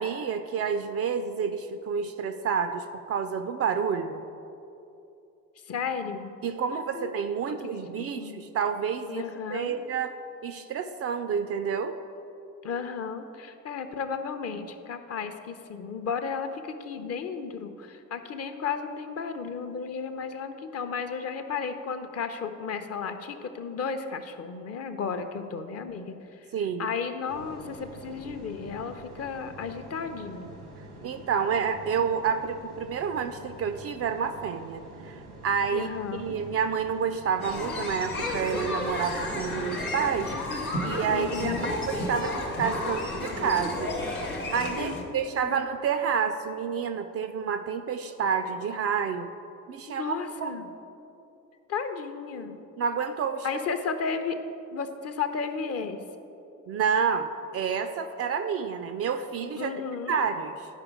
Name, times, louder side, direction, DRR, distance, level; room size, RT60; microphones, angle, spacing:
voice 1, 0.0-4.2 6.4-10.2 10.4-11.9 26.5-26.9 31.0-34.8 35.1-40.3 40.8-43.9 44.5-49.3 49.7-50.6 52.8-53.5 56.7-59.7 60.1-60.7, right 6 dB, 35° right, 9 dB, 0.4 m, -29 dB
voice 2, 5.7-6.3 6.9-7.1 7.5-8.5 9.1-9.8 12.6-26.4 26.8-30.5 35.7-36.4 41.1-41.8 44.8-45.6 49.9-50.7 51.7-52.6 53.4-54.3 54.7-56.0 59.6-60.2, left 6 dB, 35° left, 8 dB, 0.6 m, -34 dB
sound 1, 27.3-39.6, right 2 dB, 85° right, 1.2 m, -46 dB
sound 2, 37.4-45.0, left 2 dB, 90° left, 0.8 m, -32 dB
11.0 x 4.9 x 4.7 m, 2.8 s
figure-of-eight pair, 45°, 42 cm